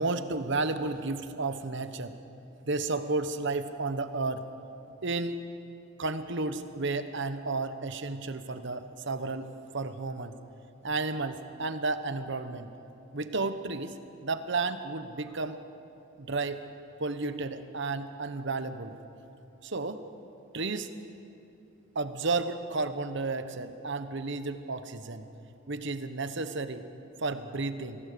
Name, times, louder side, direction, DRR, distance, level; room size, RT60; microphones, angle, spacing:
voice 1, 0.0-2.1 2.6-4.4 5.0-5.4 6.0-10.3 10.8-12.7 13.1-13.9 14.2-15.6 16.2-16.6 17.0-19.0 19.6-20.0 20.5-20.9 21.9-25.2 25.7-26.8 27.2-28.0, right 3 dB, 60° right, 10 dB, 1.1 m, -32 dB
24.0 x 17.5 x 6.9 m, 2.7 s
head